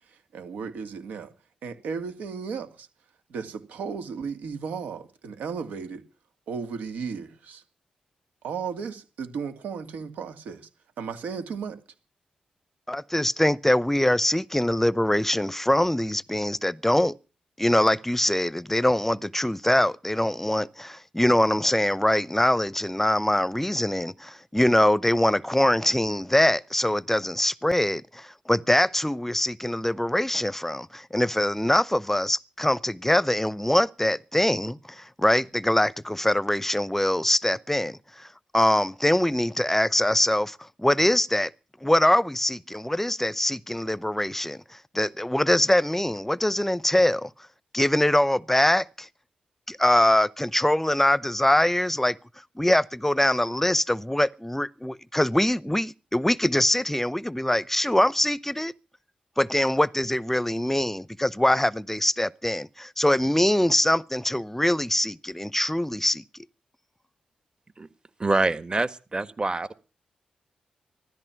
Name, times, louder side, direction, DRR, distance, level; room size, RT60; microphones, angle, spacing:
voice 1, 0.3-1.3 1.6-2.9 3.3-6.0 6.5-7.6 8.4-10.6 11.0-11.8, right 6 dB, 85° right, 2.3 m, -34 dB
voice 2, 12.9-17.1 17.6-38.3 38.5-41.5 41.8-47.3 47.7-49.1 49.7-52.2 52.6-58.7 59.4-66.2, left 1 dB, 10° left, 0.7 m, -23 dB
voice 3, 68.2-69.7, right 2 dB, 35° right, 1.6 m, -25 dB
15.5 x 13.5 x 5.9 m
supercardioid pair, 45°, 3 cm